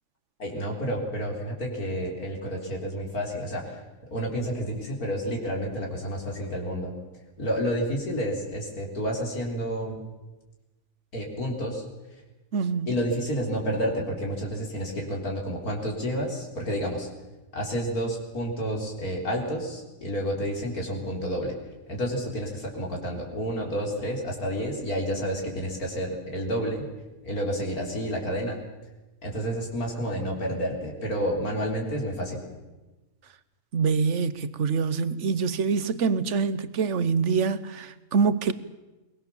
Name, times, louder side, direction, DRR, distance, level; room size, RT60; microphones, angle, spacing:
voice 1, 0.4-3.8 4.1-6.9 7.4-10.0 11.1-11.8 12.9-17.1 17.5-21.6 21.9-26.9 27.2-28.6 29.2-32.4, equal, 90° left, 0 dB, 4.5 m, -30 dB
voice 2, 12.5-12.9 33.7-38.5, right 5 dB, 55° right, 15 dB, 1.3 m, -25 dB
22.5 x 21.0 x 7.2 m, 1.1 s
omnidirectional pair, 1.5 m